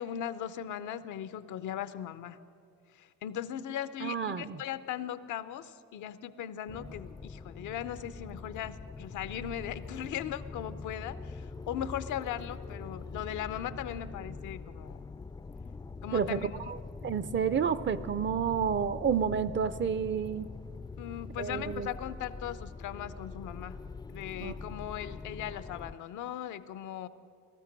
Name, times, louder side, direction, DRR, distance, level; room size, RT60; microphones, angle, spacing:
voice 1, 0.0-2.4 2.9-15.1 16.0-16.5 21.0-23.8 24.1-27.1, left 10 dB, 80° left, 13 dB, 0.6 m, -38 dB
voice 2, 4.0-4.6 16.1-16.8 17.0-20.5 21.4-21.9 24.4-24.5, right 7 dB, 40° right, 15 dB, 0.5 m, -30 dB
sound 1, 6.7-25.9, left 4 dB, 15° left, 0.3 m, -43 dB
18.5 x 13.0 x 5.2 m, 2.3 s
cardioid pair, 90°, 30 cm